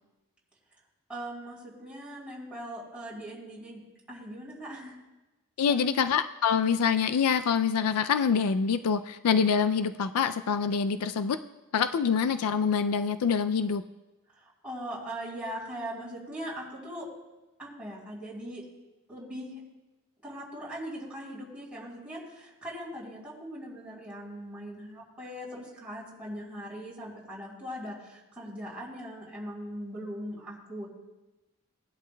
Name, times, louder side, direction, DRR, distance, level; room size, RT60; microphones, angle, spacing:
voice 1, 1.1-3.8 4.1-5.0 5.7-6.0 14.3-17.1 17.6-18.6 19.1-19.6 20.2-30.9, equal, 5° right, -7 dB, 3.4 m, -40 dB
voice 2, 5.6-11.4 11.7-13.8, left 6 dB, 85° left, 11 dB, 0.4 m, -25 dB
18.0 x 11.5 x 2.2 m, 1.1 s
head